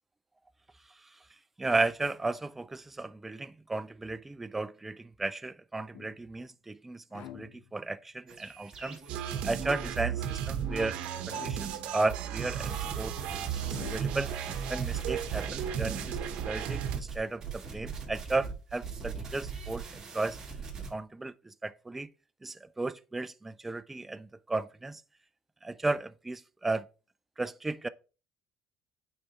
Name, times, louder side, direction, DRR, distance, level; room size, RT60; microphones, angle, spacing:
voice 1, 1.6-9.0 9.4-11.0 11.3-13.1 13.7-14.3 14.7-16.2 16.4-20.4 20.9-22.1 22.4-25.0 25.6-26.9 27.4-27.9, right 2 dB, 10° right, 0.3 m, -34 dB
sound 1, 5.9-6.5 7.1-8.0 11.3-12.1 13.6-14.4, left 11 dB, 65° left, 0.9 m, -48 dB
sound 2, 8.3-9.9 12.4-20.9, right 5 dB, 30° right, 2.4 m, -41 dB
sound 3, 9.1-17.0, right 9 dB, 65° right, 1.0 m, -34 dB
8.6 x 4.6 x 2.9 m
cardioid pair, 130°, 2 cm